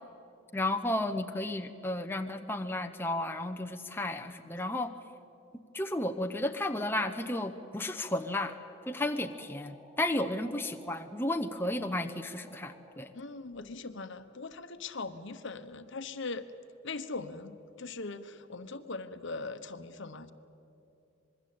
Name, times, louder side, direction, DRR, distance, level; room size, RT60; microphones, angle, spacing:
voice 1, 0.5-4.9 5.7-8.6 8.9-13.1, left 1 dB, 10° left, 6 dB, 0.8 m, -33 dB
sound 1, 7.2-12.9, left 1 dB, 25° right, 3.6 m, -57 dB
voice 2, 13.1-16.5 16.8-20.3, left 3 dB, 60° left, 11 dB, 1.1 m, -40 dB
26.0 x 21.5 x 8.6 m, 2.7 s
head